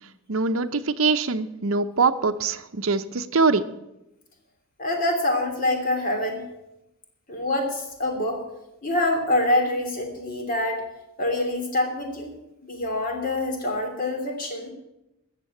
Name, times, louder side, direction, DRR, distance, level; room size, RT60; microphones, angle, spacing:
voice 1, 0.3-3.6, right 4 dB, 65° right, 9 dB, 0.7 m, -23 dB
voice 2, 4.8-6.4 7.3-8.4 8.8-10.8 11.2-12.3 12.6-14.7, left 1 dB, 40° left, 3 dB, 2.9 m, -25 dB
13.5 x 7.5 x 8.7 m, 0.90 s
head